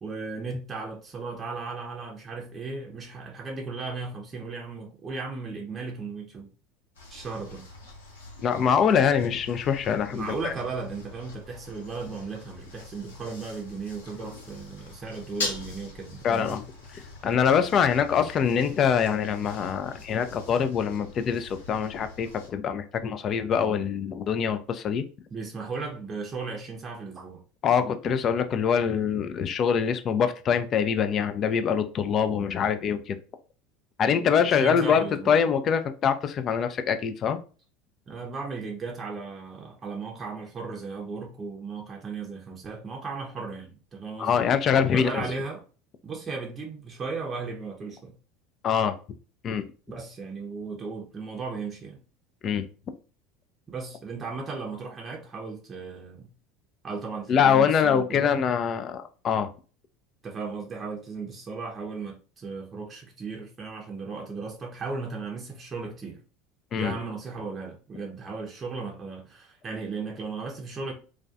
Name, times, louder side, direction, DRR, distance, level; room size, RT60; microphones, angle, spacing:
voice 1, 0.0-6.5 7.1-7.7 10.1-16.6 25.3-27.4 34.4-35.4 38.1-44.5 44.9-45.6 46.0-48.1 49.9-52.0 53.7-56.3 56.8-58.3 60.2-66.2 66.7-70.9, right 4 dB, 30° right, 0.6 m, -36 dB
sound 1, 6.9-22.5, left 3 dB, 75° left, 0.7 m, -42 dB
voice 2, 8.4-10.5 16.2-16.6 16.9-25.0 27.6-33.2 34.0-37.4 44.2-45.3 48.6-49.0 49.4-49.6 52.4-52.6 57.3-59.5 66.7-66.9, left 7 dB, 40° left, 0.3 m, -24 dB
2.3 x 2.2 x 2.5 m
hypercardioid pair, 75°, 0 cm